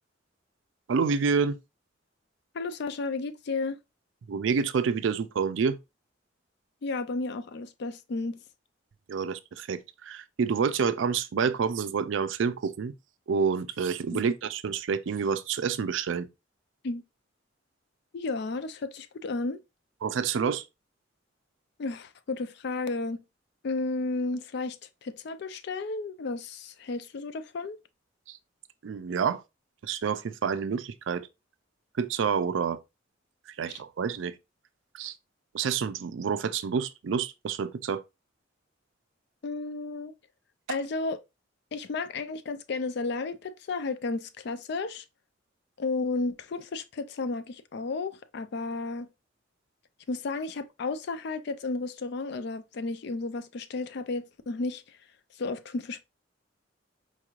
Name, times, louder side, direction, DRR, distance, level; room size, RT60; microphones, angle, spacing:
voice 1, 0.9-1.6 4.3-5.8 9.1-12.9 13.3-16.3 20.0-20.6 28.3-28.4 28.8-29.4 29.8-31.3 32.0-32.8 33.5-34.3 34.9-35.2 35.5-38.0 40.7-40.8, right 6 dB, 75° right, 0.4 m, -28 dB
voice 2, 2.5-3.8 6.8-8.4 14.1-14.2 16.8-17.0 18.1-19.6 21.8-23.2 23.6-24.8 25.0-27.8 33.7-33.8 39.4-40.1 40.7-41.2 41.7-45.0 45.8-49.1 50.1-54.8 55.4-56.0, left 3 dB, 60° left, 0.4 m, -33 dB
4.4 x 3.0 x 2.4 m
head